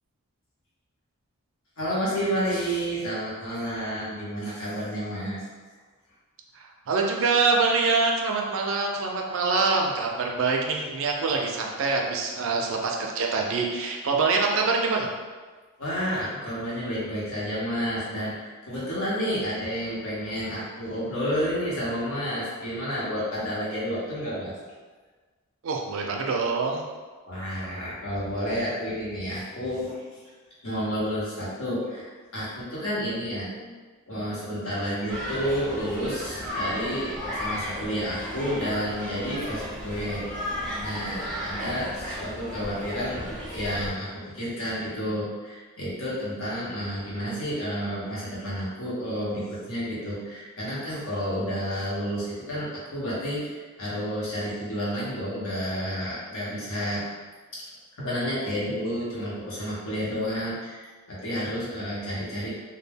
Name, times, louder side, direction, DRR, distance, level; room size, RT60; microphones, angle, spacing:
voice 1, 1.8-5.4 15.8-24.5 27.3-30.2 30.6-33.7 34.1-43.2 43.5-57.0 57.5-57.6 58.0-62.5, equal, 70° left, -7 dB, 0.9 m, -30 dB
voice 2, 6.5-15.1 25.6-26.8, right 4 dB, 60° right, 1 dB, 0.4 m, -25 dB
sound 1, 35.1-43.9, equal, 5° left, 0.6 m, -34 dB
2.2 x 2.1 x 3.3 m, 1.4 s
head